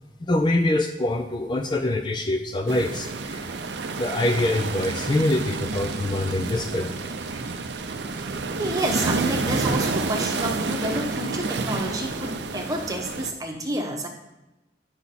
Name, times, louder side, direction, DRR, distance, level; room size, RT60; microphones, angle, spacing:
voice 1, 0.2-3.5 4.0-6.9 7.3-7.4, left 1 dB, 25° left, 6 dB, 0.4 m, -24 dB
sound 1, 2.7-13.3, right 3 dB, 75° right, 0.6 m, -29 dB
voice 2, 8.5-14.1, right 1 dB, 20° right, 2 dB, 1.0 m, -29 dB
8.4 x 5.7 x 4.2 m, 0.99 s
head